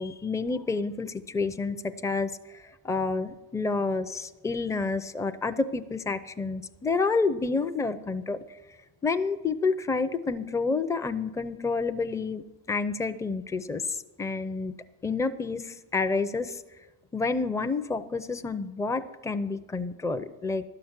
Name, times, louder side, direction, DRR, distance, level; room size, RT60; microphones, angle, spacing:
voice 1, 0.0-2.6 2.8-8.4 9.0-14.7 15.0-16.6 17.1-20.6, left 4 dB, 5° left, 9 dB, 0.5 m, -29 dB
12.0 x 5.8 x 8.1 m, 1.1 s
supercardioid pair, 90°, 44 cm